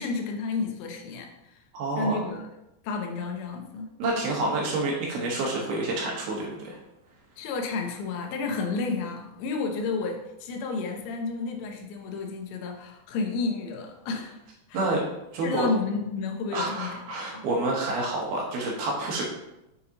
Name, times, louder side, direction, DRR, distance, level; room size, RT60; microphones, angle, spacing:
voice 1, 0.0-1.6 2.0-2.5 2.8-3.9 7.4-14.4 14.7-14.8 15.4-17.0 17.3-17.4, left 4 dB, 80° left, 3 dB, 3.0 m, -31 dB
voice 2, 1.7-2.2 4.0-6.8 14.7-15.0 15.3-15.7 16.5-19.2, right 2 dB, 70° right, -2 dB, 2.8 m, -28 dB
7.0 x 6.7 x 2.9 m, 0.90 s
omnidirectional pair, 5.1 m